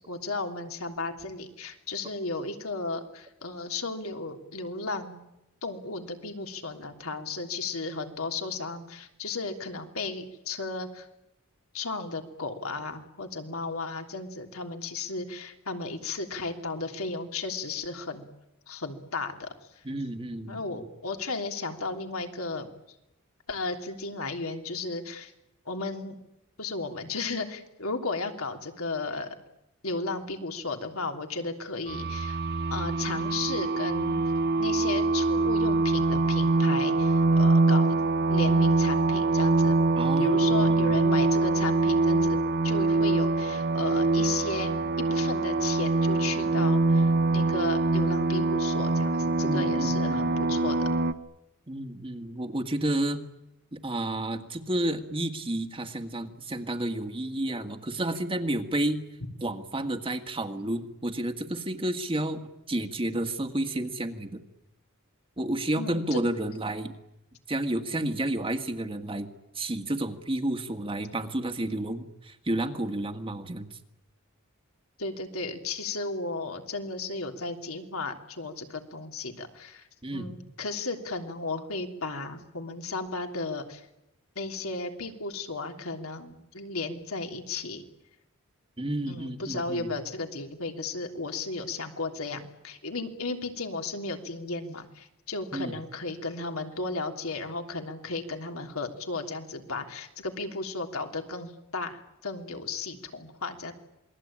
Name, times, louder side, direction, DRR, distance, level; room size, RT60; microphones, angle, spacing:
voice 1, 0.1-5.2 5.6-11.1 11.7-18.2 18.7-19.5 20.5-22.7 23.5-25.3 25.6-26.2 26.6-29.4 29.8-32.4 32.7-34.2 34.6-38.0 38.3-39.8 40.2-50.9 65.8-66.2 75.0-83.8 84.3-87.8 89.1-103.7, left 3 dB, 75° left, 4 dB, 3.3 m, -34 dB
voice 2, 19.8-20.8 40.0-41.0 49.4-50.4 51.7-53.2 53.7-59.0 59.4-64.4 65.4-66.9 67.5-69.3 69.6-73.7 80.0-80.4 88.8-89.9 95.5-95.7, right 1 dB, 25° right, 7 dB, 1.9 m, -31 dB
sound 1, 31.9-51.1, right 3 dB, 50° right, 1.2 m, -24 dB
27.5 x 21.5 x 8.8 m, 0.88 s
head